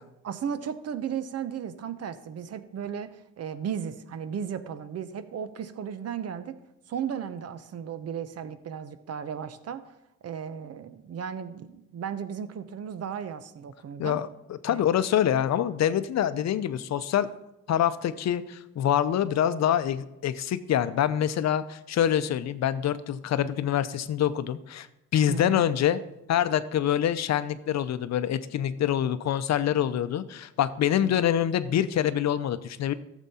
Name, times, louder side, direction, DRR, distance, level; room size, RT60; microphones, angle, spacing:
voice 1, 0.2-6.6 6.9-9.9 10.2-14.2 14.7-14.9 25.3-25.6 31.0-31.3, right 8 dB, 55° right, 12 dB, 0.9 m, -35 dB
voice 2, 14.0-17.3 17.7-24.9 25.1-26.0 26.3-32.9, left 10 dB, 60° left, 13 dB, 0.7 m, -25 dB
12.5 x 7.3 x 4.2 m, 0.91 s
cardioid pair, 90°, 30 cm